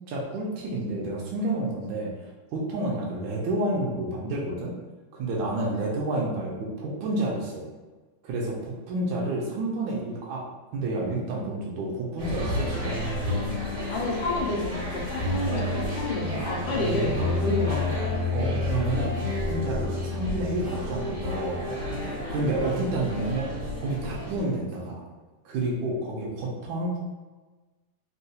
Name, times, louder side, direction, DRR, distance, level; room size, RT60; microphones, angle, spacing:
voice 1, 0.1-2.1 2.5-4.7 5.1-7.6 8.2-10.4 10.7-13.0 18.3-22.0 22.3-23.5 23.8-25.0 25.4-27.0, right 2 dB, 75° right, -3 dB, 1.2 m, -30 dB
sound 1, 12.2-24.4, left 1 dB, 55° right, 1.1 m, -30 dB
voice 2, 13.9-18.0, left 2 dB, 75° left, -2 dB, 1.1 m, -30 dB
3.5 x 2.3 x 2.7 m, 1.2 s
omnidirectional pair, 2.4 m